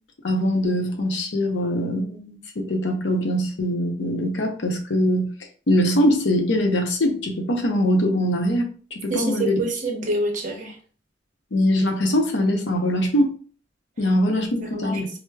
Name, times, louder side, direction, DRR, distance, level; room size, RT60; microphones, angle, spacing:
voice 1, 0.2-5.3 5.7-9.6 11.5-13.3 14.0-15.1, equal, 80° left, 0.6 m, -22 dB
voice 2, 9.1-10.8 14.6-15.1, right 2 dB, 45° right, 0.8 m, -26 dB
4.5 x 2.0 x 2.2 m
head